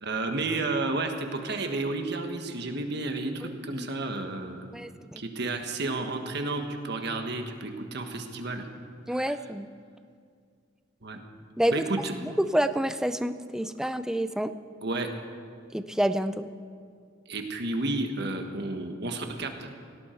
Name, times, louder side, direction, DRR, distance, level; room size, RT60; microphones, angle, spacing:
voice 1, 0.0-4.7 5.1-8.7 9.1-9.5 11.0-11.2 11.7-12.1 14.8-15.1 17.3-19.7, right 2 dB, 55° right, 5 dB, 1.5 m, -31 dB
voice 2, 4.7-5.2 9.1-9.7 11.6-11.7 12.2-14.5 15.7-16.4, right 1 dB, 5° right, 10 dB, 0.4 m, -28 dB
17.5 x 17.0 x 4.5 m, 2.2 s
head